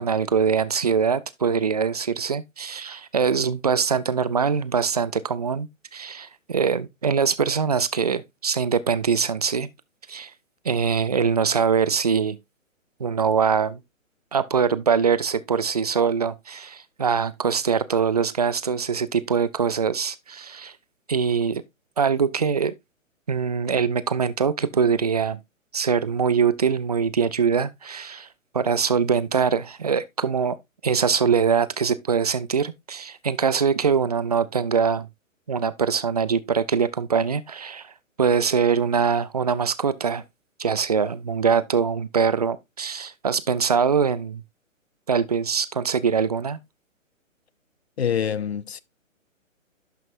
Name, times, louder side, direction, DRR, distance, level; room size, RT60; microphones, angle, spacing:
voice 1, 0.0-9.7 10.1-10.3 10.6-12.4 13.0-13.8 14.3-20.7 21.1-21.6 22.0-22.7 23.3-25.4 25.7-28.3 28.5-30.6 30.8-35.1 35.5-37.9 38.2-40.2 40.6-44.4 45.1-46.6, right 6 dB, 30° right, 0.4 m, -23 dB
voice 2, 48.0-48.8, left 8 dB, 50° left, 0.5 m, -25 dB
11.5 x 5.9 x 2.5 m
figure-of-eight pair, 130°, 40 cm